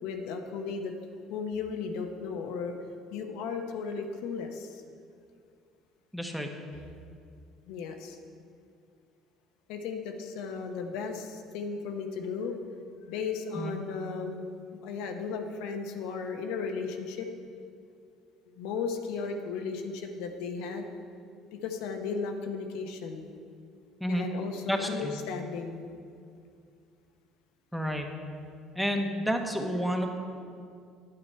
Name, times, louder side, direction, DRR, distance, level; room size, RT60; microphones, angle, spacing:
voice 1, 0.0-0.9 1.3-2.7 3.1-4.8 7.7-8.2 9.7-12.6 13.1-14.5 14.8-17.3 18.5-20.9 21.5-23.3 24.1-25.8, left 5 dB, 80° left, 4 dB, 1.0 m, -35 dB
voice 2, 6.1-6.5 13.6-13.7 24.0-24.3 24.7-25.1 27.7-28.1 28.7-30.1, equal, ahead, 3 dB, 1.1 m, -30 dB
9.5 x 8.7 x 4.5 m, 2.3 s
supercardioid pair, 95°, 0 cm